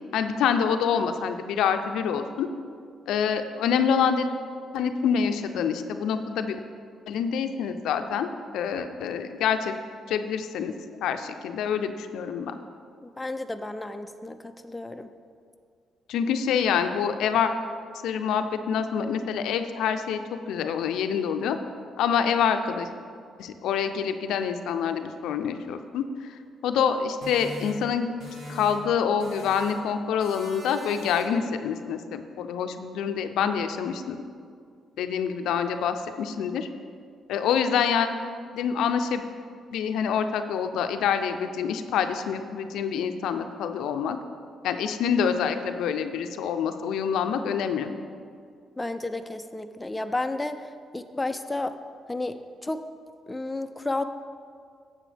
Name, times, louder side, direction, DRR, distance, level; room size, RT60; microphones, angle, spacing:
voice 1, 0.1-2.5 3.1-4.3 4.7-6.6 7.1-9.7 10.1-10.7 11.0-12.6 16.1-17.5 18.0-21.6 22.0-22.9 23.4-28.1 28.5-34.2 35.0-36.7 37.3-38.1 38.5-39.2 39.7-44.2 44.6-47.9, left 7 dB, 85° left, 8 dB, 0.5 m, -26 dB
voice 2, 13.0-15.1 48.8-51.7 52.1-52.9 53.3-54.0, left 2 dB, 15° left, 8 dB, 0.4 m, -32 dB
sound 1, 27.2-28.9 29.2-29.9 30.2-31.5, equal, 65° right, 1.9 m, -41 dB
10.0 x 7.4 x 3.4 m, 2.2 s
cardioid pair, 90°, 0 cm